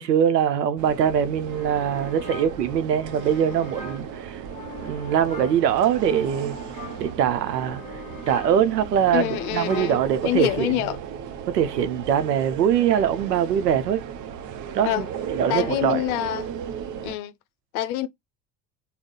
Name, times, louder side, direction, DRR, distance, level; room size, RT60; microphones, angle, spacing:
voice 1, 0.0-4.4 4.8-6.6 7.0-7.8 8.3-10.7 11.5-14.0 14.7-15.1 15.4-16.0, right 9 dB, 80° right, 0.6 m, -22 dB
sound 1, 0.8-17.2, right 8 dB, 40° right, 0.6 m, -36 dB
sound 2, 1.5-11.0, left 2 dB, 15° left, 1.4 m, -41 dB
voice 2, 9.1-11.0 14.8-15.1 15.5-16.5 17.0-17.3 17.7-18.1, left 13 dB, 65° left, 0.6 m, -26 dB
3.6 x 2.1 x 3.9 m
figure-of-eight pair, 60°, 48 cm